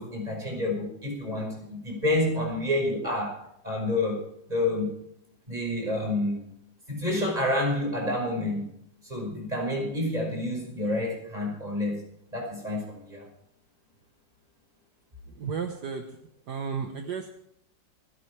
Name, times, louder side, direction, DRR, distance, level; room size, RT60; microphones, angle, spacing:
voice 1, 0.0-4.2 4.5-4.9 5.5-6.4 6.9-8.7 9.0-12.0 12.3-13.2, left 1 dB, 20° right, 0 dB, 5.7 m, -29 dB
voice 2, 15.4-16.1 16.5-17.3, right 6 dB, 65° right, 4 dB, 1.8 m, -33 dB
28.0 x 12.0 x 3.4 m, 0.73 s
omnidirectional pair, 1.9 m